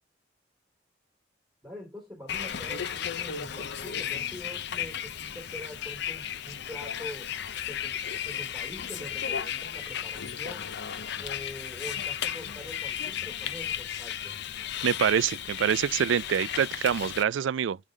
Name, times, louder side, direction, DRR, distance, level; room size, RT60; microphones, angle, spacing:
voice 1, 1.6-7.3 7.7-8.0 8.2-10.7 11.2-14.4, left 1 dB, ahead, 3.0 m, -44 dB
Bus, 2.3-17.2, left 9 dB, 65° left, 0.6 m, -34 dB
voice 2, 14.8-17.8, right 8 dB, 85° right, 0.4 m, -25 dB
6.2 x 5.4 x 5.1 m
head